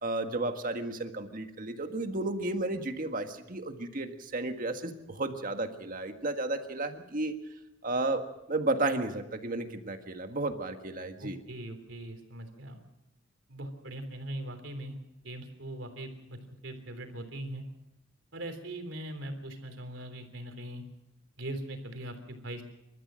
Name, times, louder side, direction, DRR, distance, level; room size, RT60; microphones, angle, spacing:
voice 1, 0.0-7.3 7.8-8.2 8.5-11.4, right 2 dB, 45° right, 6 dB, 1.7 m, -33 dB
voice 2, 11.2-12.8 13.5-14.9 15.2-17.6 18.3-20.8 21.4-22.6, right 1 dB, 75° right, 6 dB, 3.5 m, -40 dB
29.5 x 14.0 x 6.4 m, 0.88 s
head